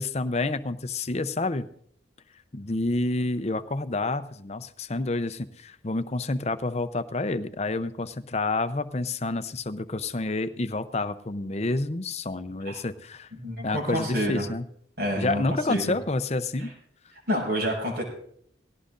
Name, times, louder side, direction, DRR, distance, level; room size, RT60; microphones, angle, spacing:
voice 1, 0.0-1.7 2.5-13.3 13.6-14.6 15.2-16.7, left 2 dB, 35° left, 11 dB, 0.7 m, -29 dB
voice 2, 13.4-14.4 15.0-15.4 15.7-15.9 16.6-16.7 17.3-18.0, equal, 55° right, -1 dB, 6.4 m, -28 dB
18.5 x 17.0 x 2.6 m, 0.65 s
head